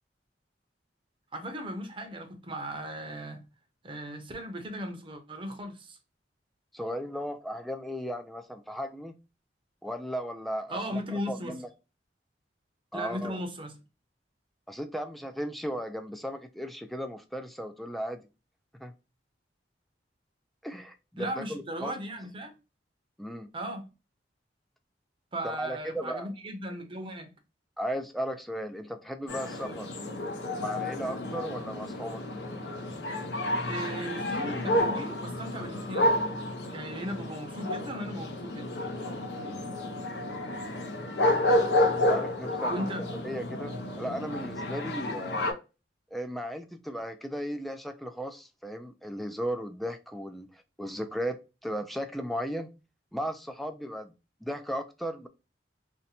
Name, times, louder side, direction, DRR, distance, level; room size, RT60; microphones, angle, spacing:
voice 1, 1.3-3.4 3.8-6.0 10.7-11.6 12.9-13.7 21.2-22.5 23.5-23.9 25.3-27.3 29.6-29.7 33.6-36.3 36.7-38.7 42.7-43.0, equal, 30° right, 0.7 m, -37 dB
voice 2, 6.7-9.2 9.8-11.0 11.3-11.7 12.9-13.4 14.7-18.3 18.8-18.9 20.6-21.9 23.2-23.5 25.4-26.3 27.8-29.9 30.6-32.2 39.4-39.7 42.1-42.7 43.2-45.5 46.1-52.7 53.1-54.1 54.4-55.3, equal, ahead, 0.3 m, -36 dB
sound 1, 29.3-45.5, left 1 dB, 70° left, 0.7 m, -30 dB
2.7 x 2.1 x 4.0 m
head